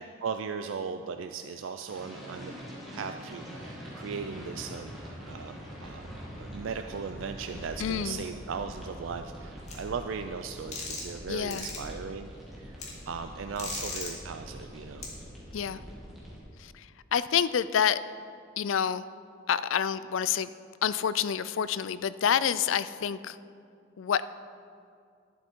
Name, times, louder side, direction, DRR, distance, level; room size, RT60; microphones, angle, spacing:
voice 1, 0.0-2.6 2.9-4.9 5.3-6.1 6.4-12.8 13.1-15.1, right 5 dB, 85° right, 7 dB, 0.4 m, -37 dB
sound 1, 1.9-16.4, equal, ahead, 2.1 m, -44 dB
voice 2, 7.8-8.2 11.3-11.7 15.5-15.8 16.6-18.0 18.6-19.1 19.5-20.5 20.8-23.4 24.0-24.3, left 8 dB, 85° left, 15 dB, 0.4 m, -28 dB
sound 2, 9.7-9.8 10.7-11.2 11.5-11.8 12.8-12.9 13.6-14.1 15.0-15.1, left 4 dB, 35° left, 2.1 m, -36 dB
11.5 x 11.0 x 4.6 m, 2.3 s
head